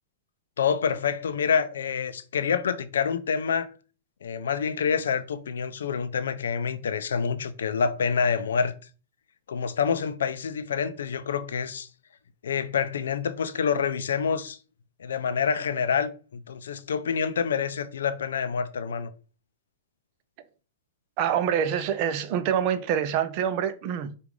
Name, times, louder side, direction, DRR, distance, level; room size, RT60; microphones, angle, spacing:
voice 1, 0.6-3.7 4.2-8.7 9.5-11.9 12.4-14.6 15.0-19.1, left 6 dB, 80° left, 0.4 m, -27 dB
voice 2, 21.2-24.2, right 9 dB, 50° right, 0.5 m, -26 dB
5.0 x 2.4 x 3.2 m
hypercardioid pair, 110°, 0 cm